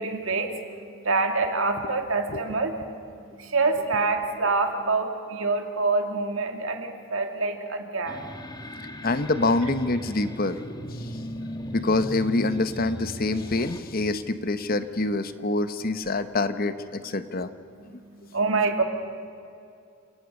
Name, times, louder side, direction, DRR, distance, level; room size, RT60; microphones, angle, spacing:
voice 1, 0.0-8.3 11.1-11.7 17.7-18.8, right 3 dB, 75° right, 5 dB, 2.3 m, -27 dB
sound 1, 8.1-13.8, equal, 20° left, 1.2 m, -37 dB
voice 2, 9.0-10.6 10.9-11.2 11.7-17.5, left 2 dB, 45° left, 11 dB, 0.9 m, -26 dB
28.0 x 18.0 x 6.5 m, 2.6 s
head